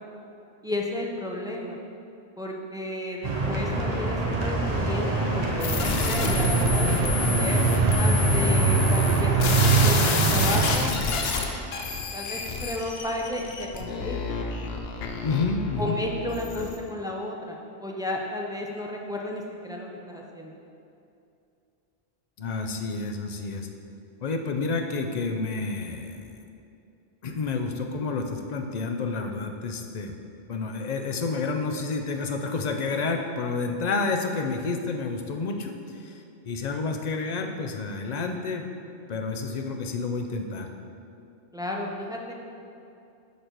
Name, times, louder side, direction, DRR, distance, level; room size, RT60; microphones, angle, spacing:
voice 1, 0.6-1.8 2.4-7.6 8.0-10.9 11.4-11.6 12.1-14.4 15.8-20.6 41.5-42.3, left 1 dB, 5° right, -1 dB, 0.4 m, -33 dB
sound 1, 3.2-10.7, right 3 dB, 40° right, 0.9 m, -23 dB
sound 2, 5.6-16.8, left 4 dB, 80° left, 0.9 m, -29 dB
voice 2, 15.2-16.0 22.4-23.7 24.2-26.2 27.2-30.2 30.5-38.7 39.1-40.7, left 4 dB, 50° left, 4 dB, 0.6 m, -29 dB
6.7 x 5.1 x 4.6 m, 2.6 s
omnidirectional pair, 1.0 m